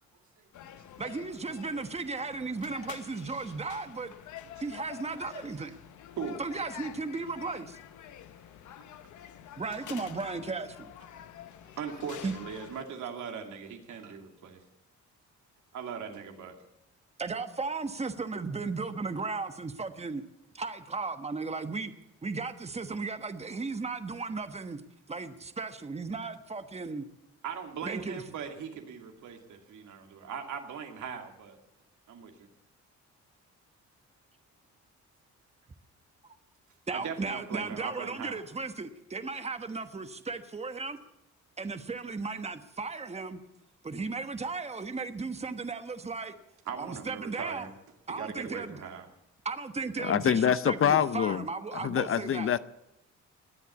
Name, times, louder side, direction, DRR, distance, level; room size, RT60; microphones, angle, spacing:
sound 1, 0.5-12.8, left 10 dB, 75° left, 1.1 m, -47 dB
voice 1, 1.0-4.1 4.6-5.7 6.4-7.8 9.6-10.9 12.2-12.3 17.2-20.2 20.5-21.9 22.2-24.8 25.1-27.1 27.8-28.2 36.9-41.0 41.6-43.4 43.8-46.3 46.8-47.7 48.1-48.8 49.4-52.5, right 4 dB, 20° right, 9 dB, 1.2 m, -35 dB
voice 2, 11.7-14.6 15.7-16.5 27.4-31.6 32.1-32.3 36.9-38.4 46.7-47.7 48.1-49.1, right 7 dB, 75° right, 3 dB, 2.6 m, -40 dB
voice 3, 50.0-51.4 51.8-52.6, left 8 dB, 45° left, 15 dB, 0.7 m, -25 dB
20.5 x 8.1 x 8.3 m, 0.85 s
cardioid pair, 90°, 30 cm